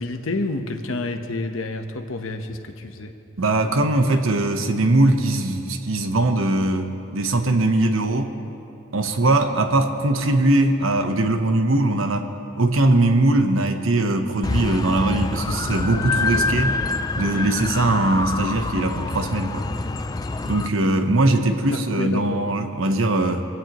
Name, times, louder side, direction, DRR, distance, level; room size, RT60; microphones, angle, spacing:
voice 1, 0.0-3.1 20.1-20.3 20.8-20.9 21.4-22.4, left 2 dB, 80° left, 6 dB, 1.0 m, -29 dB
voice 2, 3.4-8.3 8.9-12.3 12.6-16.8 17.2-19.7 20.4-23.4, right 2 dB, 85° right, 6 dB, 1.1 m, -21 dB
sound 1, 14.4-20.7, left 3 dB, 20° left, 0.3 m, -26 dB
23.5 x 16.0 x 3.1 m, 2.8 s
head